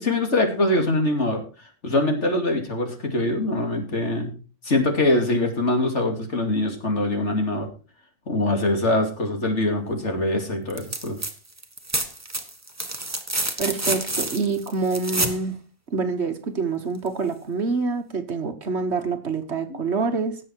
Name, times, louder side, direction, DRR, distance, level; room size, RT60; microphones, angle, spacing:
voice 1, 0.0-1.4 1.8-4.3 4.6-7.7 8.3-11.2 19.7-19.8, left 2 dB, 60° left, 4 dB, 2.8 m, -23 dB
sound 1, 10.7-11.3 11.6-15.4 17.1-17.2, right 2 dB, 10° right, 1.3 m, -28 dB
voice 2, 13.6-15.5 15.9-20.4, right 4 dB, 55° right, 9 dB, 1.5 m, -26 dB
17.0 x 7.5 x 4.5 m, 0.35 s
omnidirectional pair, 1.4 m